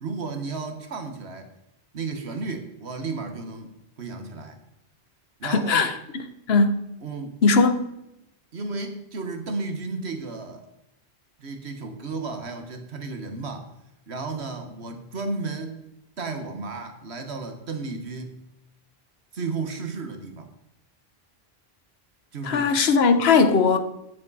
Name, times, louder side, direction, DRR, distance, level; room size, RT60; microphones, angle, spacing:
voice 1, 0.0-1.5 1.9-4.6 5.4-5.9 7.0-7.4 8.5-10.6 11.4-13.7 14.1-15.8 16.2-18.4 19.3-20.5 22.3-22.8, right 3 dB, 85° right, 1.7 m, -33 dB
voice 2, 5.4-6.8 7.4-7.8 22.4-23.8, left 4 dB, 75° left, 1.2 m, -20 dB
12.0 x 9.8 x 4.1 m
omnidirectional pair, 1.1 m